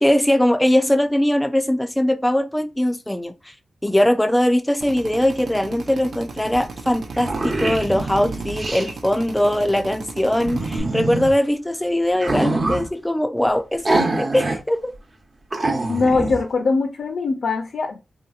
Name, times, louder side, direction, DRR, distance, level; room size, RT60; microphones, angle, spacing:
voice 1, 0.0-3.5 3.8-14.9, left 1 dB, 10° left, 0.4 m, -20 dB
Drill, 4.8-10.8, right 4 dB, 80° right, 0.6 m, -36 dB
sound 1, 6.5-6.6 6.9-8.9 10.4-11.3 12.1-12.9 13.8-14.6 14.9-15.0 15.5-16.4, right 2 dB, 45° right, 0.7 m, -24 dB
voice 2, 15.9-18.0, left 4 dB, 75° left, 0.5 m, -21 dB
3.3 x 2.8 x 2.4 m
wide cardioid pair, 105°, 0 cm